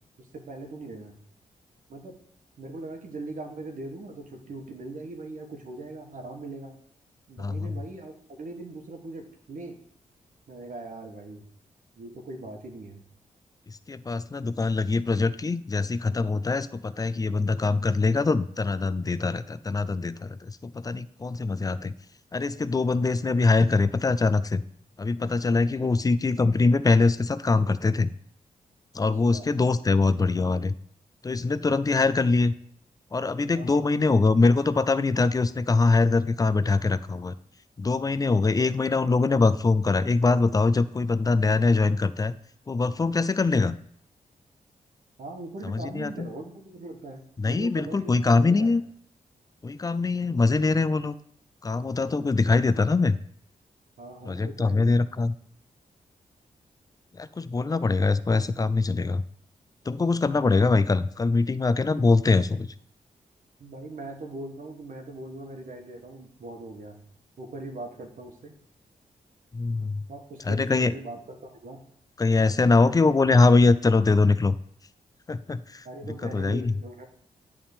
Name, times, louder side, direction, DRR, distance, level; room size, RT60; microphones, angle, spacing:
voice 1, 0.2-1.2 1.9-2.2 2.6-6.8 7.3-9.8 10.5-11.4 12.0-13.0 25.8-25.9 29.0-29.5 33.5-33.9 38.6-38.7 45.2-48.8 54.0-54.9 63.6-67.0 67.4-68.6 70.1-71.8 72.7-72.9 75.8-77.1, right 2 dB, 65° right, 2 dB, 1.3 m, -40 dB
voice 2, 7.4-7.7 13.7-21.9 22.3-24.6 25.0-28.1 28.9-30.7 31.2-32.5 33.1-37.3 37.8-42.3 42.7-43.8 45.6-46.3 47.4-48.8 49.6-51.2 51.6-53.2 54.3-55.3 57.1-59.2 59.9-62.7 69.5-70.0 70.4-70.9 72.2-74.6 75.3-75.9 76.2-76.7, left 3 dB, 25° left, 15 dB, 0.4 m, -23 dB
8.8 x 3.6 x 6.6 m, 0.65 s
cardioid pair, 65°, 15 cm